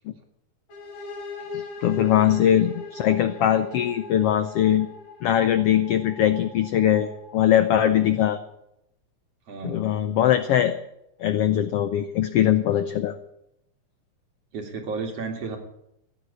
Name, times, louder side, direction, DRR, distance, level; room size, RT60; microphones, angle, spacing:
sound 1, 0.7-8.4, left 3 dB, 55° left, 4.7 m, -41 dB
voice 1, 1.5-4.9 5.2-8.4 9.6-10.8 11.2-13.2, left 11 dB, 75° left, 11 dB, 1.4 m, -21 dB
voice 2, 9.5-9.9 14.5-15.6, right 4 dB, 55° right, 3 dB, 3.1 m, -33 dB
16.5 x 9.5 x 8.4 m, 0.82 s
omnidirectional pair, 3.6 m